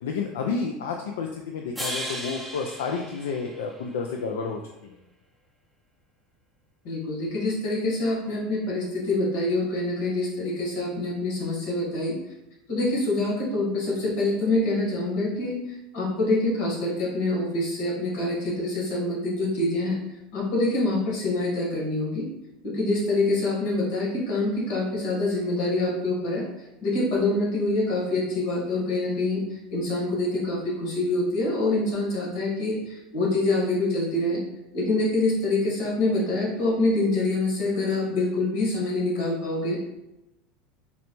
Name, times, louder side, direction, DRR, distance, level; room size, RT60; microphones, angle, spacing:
voice 1, 0.0-5.0, left 5 dB, 85° left, 2 dB, 0.3 m, -30 dB
sound 1, 1.8-4.1, equal, ahead, 0.6 m, -36 dB
voice 2, 6.8-12.1 12.7-20.0 20.3-22.3 22.6-26.4 26.8-29.4 29.7-34.4 34.7-39.9, left 2 dB, 65° left, -3 dB, 1.4 m, -25 dB
3.9 x 2.1 x 2.9 m, 0.92 s
supercardioid pair, 110°, 0 cm